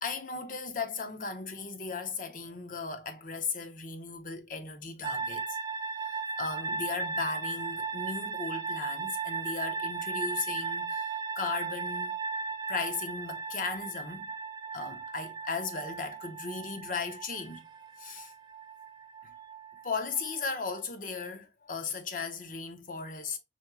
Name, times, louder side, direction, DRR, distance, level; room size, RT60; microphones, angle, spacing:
voice 1, 0.0-5.6 6.0-12.2 12.7-14.3 14.7-17.6 18.0-18.3 19.2-19.3 19.8-23.4, left 4 dB, 50° left, 0.7 m, -36 dB
sound 1, 5.0-20.8, right 5 dB, 25° right, 0.4 m, -36 dB
4.4 x 3.7 x 2.3 m
head